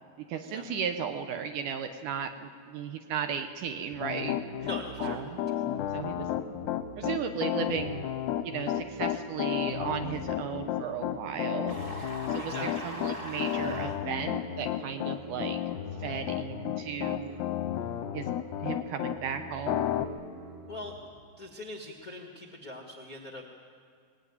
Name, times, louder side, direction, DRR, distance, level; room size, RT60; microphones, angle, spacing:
voice 1, 0.2-4.7 5.0-5.5 5.9-6.5 7.0-8.1 8.4-15.6 16.0-17.4 18.1-18.3 18.6-19.9, right 7 dB, 75° right, 7 dB, 1.9 m, -35 dB
sound 1, 3.9-21.0, left 1 dB, 55° right, 4.0 m, -47 dB
Piano, 4.0-19.2 19.7-20.0, left 11 dB, 90° left, 3.0 m, -32 dB
voice 2, 4.6-5.2 5.5-5.6 10.1-10.3 12.4-13.3 17.2-17.5 20.7-21.1 21.4-23.5, left 1 dB, 75° left, 1 dB, 0.8 m, -42 dB
sound 2, 11.7-14.0, equal, 25° right, 1.3 m, -40 dB
21.5 x 19.5 x 9.7 m, 2.2 s
omnidirectional pair, 4.8 m